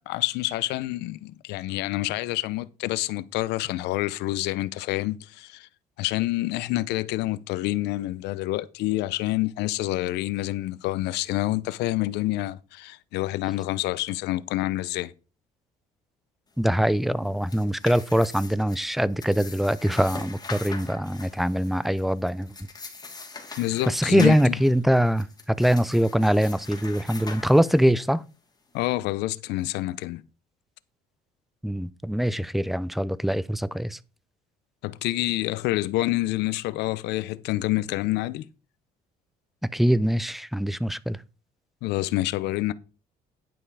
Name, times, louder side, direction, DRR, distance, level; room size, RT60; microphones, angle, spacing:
voice 1, 0.1-5.7 6.0-15.1 23.6-24.5 28.7-30.2 34.8-38.5 41.8-42.7, left 17 dB, 90° left, 0.6 m, -27 dB
voice 2, 16.6-22.5 23.9-28.2 31.6-34.0 39.7-41.2, equal, ahead, 0.5 m, -23 dB
sound 1, 17.2-28.1, left 4 dB, 25° left, 2.7 m, -42 dB
10.5 x 5.6 x 4.7 m
cardioid pair, 110°, 17 cm